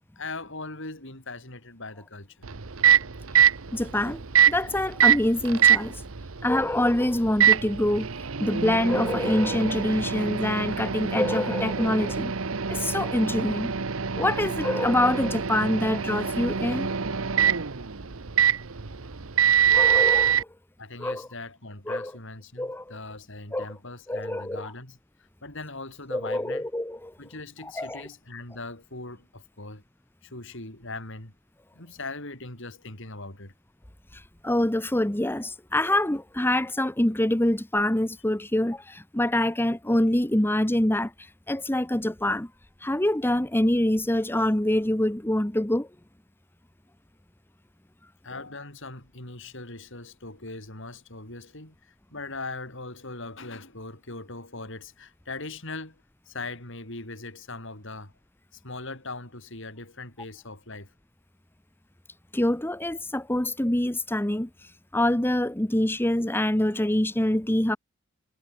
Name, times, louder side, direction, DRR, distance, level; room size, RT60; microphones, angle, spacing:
voice 1, 0.2-2.5 20.8-25.0 25.4-26.7 27.2-29.8 30.2-31.3 31.7-33.5 48.2-58.1 58.5-60.9, left 3 dB, 65° left, 7.3 m, -40 dB
Microwave oven, 2.4-20.4, right 8 dB, 75° right, 1.1 m, -24 dB
voice 2, 3.7-6.0 6.4-12.3 12.7-13.7 14.1-16.9 19.7-20.5 21.0-21.3 21.9-22.1 22.6-23.0 23.5-23.7 24.1-24.7 26.1-27.1 27.6-28.1 34.1-42.5 42.8-45.9 62.3-67.8, left 1 dB, 10° left, 1.1 m, -25 dB
head